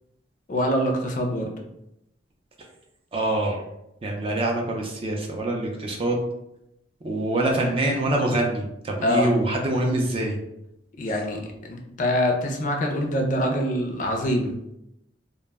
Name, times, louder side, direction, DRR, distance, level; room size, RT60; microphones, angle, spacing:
voice 1, 0.5-1.5 9.0-9.3 11.0-14.5, equal, 45° left, 2 dB, 0.4 m, -24 dB
voice 2, 3.1-3.6 4.0-6.2 7.0-10.4, right 1 dB, 30° right, 0 dB, 0.4 m, -25 dB
2.1 x 2.0 x 3.3 m, 0.83 s
head